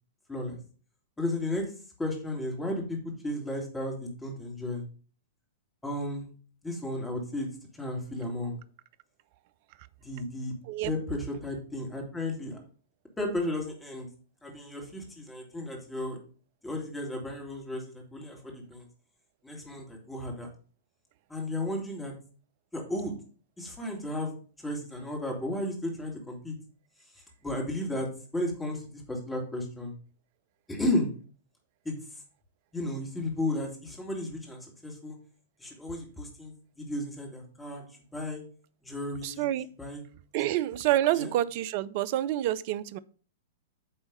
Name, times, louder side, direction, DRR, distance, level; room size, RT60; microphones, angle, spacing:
voice 1, 1.2-1.7 2.0-3.0 3.2-4.8 5.8-6.3 6.6-7.5 7.7-8.6 10.0-10.5 10.8-12.6 13.2-14.1 14.4-16.2 16.6-18.9 19.4-20.5 21.3-22.1 22.7-23.1 23.6-24.3 24.6-26.6 27.4-29.9 30.7-31.1 31.8-32.0 32.7-35.2 35.6-38.4 38.8-39.5 39.8-40.0 40.5-40.6 41.1-41.3, left 1 dB, 10° left, 2.3 m, -34 dB
voice 2, 39.2-39.7 40.3-43.0, right 13 dB, 45° right, 0.4 m, -28 dB
9.2 x 3.5 x 5.3 m
figure-of-eight pair, 105°, 0 cm